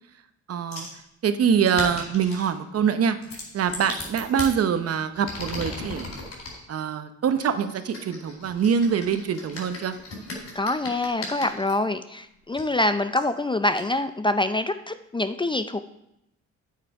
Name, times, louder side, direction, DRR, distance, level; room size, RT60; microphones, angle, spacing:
voice 1, 0.5-0.9 1.2-3.2 3.5-6.1 6.7-10.0, right 7 dB, 55° right, 10 dB, 0.8 m, -24 dB
sound 1, 0.7-1.0 1.6-2.5 3.2-4.5 5.1-6.6 7.4-11.7 12.5-12.6 13.2-13.3 13.8-13.9, left 2 dB, 55° left, 4.0 m, -37 dB
voice 2, 10.5-15.8, left 2 dB, 15° left, 10 dB, 0.4 m, -25 dB
8.7 x 7.6 x 4.7 m, 0.82 s
cardioid pair, 90°, 30 cm